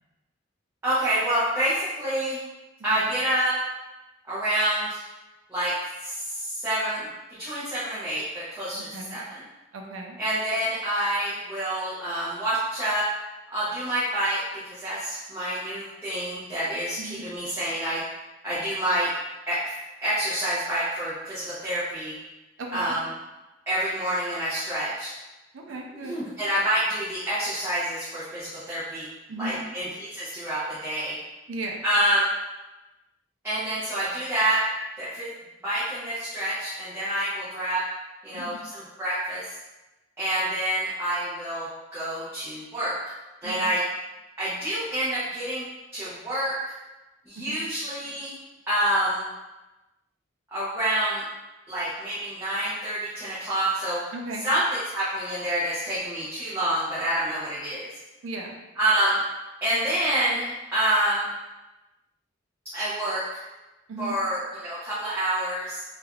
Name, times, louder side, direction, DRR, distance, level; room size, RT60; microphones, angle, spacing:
voice 1, 0.8-2.4 2.8-3.6 4.2-5.0 5.5-5.8 6.0-7.1 7.4-9.4 10.2-13.1 13.5-18.0 18.4-19.1 19.5-19.7 20.0-22.1 22.7-23.1 23.7-25.1 26.0-29.1 29.4-31.2 31.8-32.3 33.4-34.6 35.0-35.3 35.6-37.9 38.2-39.5 40.2-43.0 43.4-43.8 44.4-45.6 45.9-46.6 47.3-48.4 48.7-49.3 50.5-51.2 51.7-54.0 54.4-57.9 58.8-59.2 59.6-61.3 62.6-63.2 64.0-65.8, right 1 dB, 15° right, -13 dB, 0.7 m, -27 dB
voice 2, 8.7-9.2 9.7-10.2 17.0-17.2 22.6-22.9 25.5-26.2 29.3-29.6 31.5-31.8 38.3-38.6 43.4-43.7 47.4-47.6 54.1-54.5 58.2-58.6 63.9-64.1, right 2 dB, 85° right, 1 dB, 0.5 m, -36 dB
3.2 x 2.4 x 2.3 m, 1.1 s
head